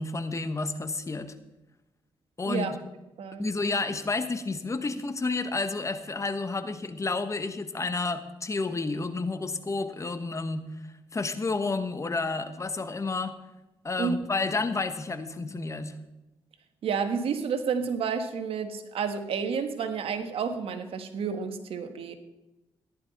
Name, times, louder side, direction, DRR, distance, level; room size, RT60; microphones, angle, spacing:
voice 1, 0.0-1.3 2.4-2.8 3.4-10.7 11.1-13.3 13.8-15.9, left 3 dB, 30° left, 10 dB, 1.2 m, -30 dB
voice 2, 16.8-22.2, right 6 dB, 75° right, 8 dB, 1.4 m, -30 dB
14.5 x 11.0 x 4.1 m, 0.97 s
cardioid pair, 75°, 10 cm